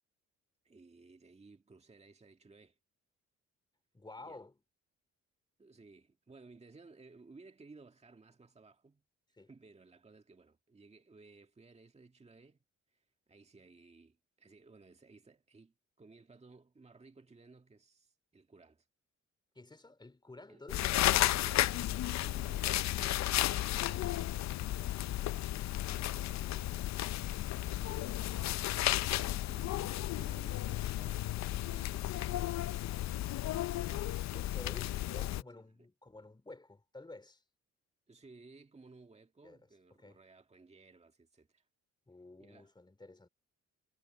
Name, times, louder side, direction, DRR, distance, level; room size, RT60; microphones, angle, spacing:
voice 1, 0.6-2.8 4.2-4.4 5.6-9.0 9.4-12.6 12.9-18.9 20.5-20.8 21.2-25.2 25.8-27.0 27.7-28.5 29.5-32.6 33.7-34.1 35.5-35.7 38.1-41.7 42.4-42.7, right 3 dB, 20° right, 2.0 m, -58 dB
voice 2, 3.9-4.6 9.4-9.5 19.5-21.1 34.3-37.4 39.4-39.6 39.9-40.2 42.1-43.3, left 2 dB, 15° left, 3.1 m, -52 dB
sound 1, 20.7-35.4, left 14 dB, 65° left, 0.5 m, -33 dB
cardioid pair, 90°, 30 cm